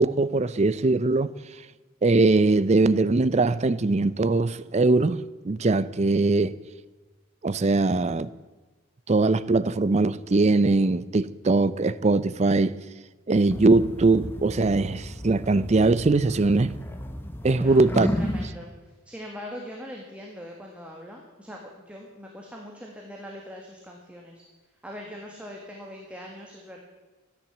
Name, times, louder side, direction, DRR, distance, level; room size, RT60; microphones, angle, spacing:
voice 1, 0.0-1.3 2.0-6.6 7.4-8.3 9.1-12.8 13.3-16.7 17.4-18.1, right 3 dB, 30° right, 0.5 m, -21 dB
sound 1, 13.5-18.5, equal, 10° left, 0.9 m, -33 dB
voice 2, 17.5-18.7 19.1-24.4 24.8-26.8, equal, 5° right, 1.6 m, -41 dB
13.5 x 10.5 x 7.2 m
head